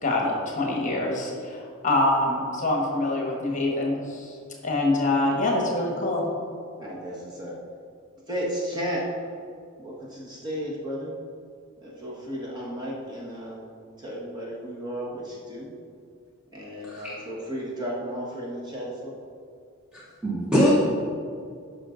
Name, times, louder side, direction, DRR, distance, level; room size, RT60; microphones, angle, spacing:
voice 1, 0.0-4.3 4.6-6.2, left 2 dB, 35° left, 0 dB, 1.3 m, -25 dB
voice 2, 6.8-7.6 8.3-9.1 9.8-11.1 11.8-13.7 14.0-15.7 16.5-19.2, equal, 20° right, -4 dB, 1.4 m, -34 dB
voice 3, 16.8-17.2 19.9-20.7, equal, 5° right, -7 dB, 0.9 m, -23 dB
10.5 x 5.6 x 3.8 m, 2.2 s
head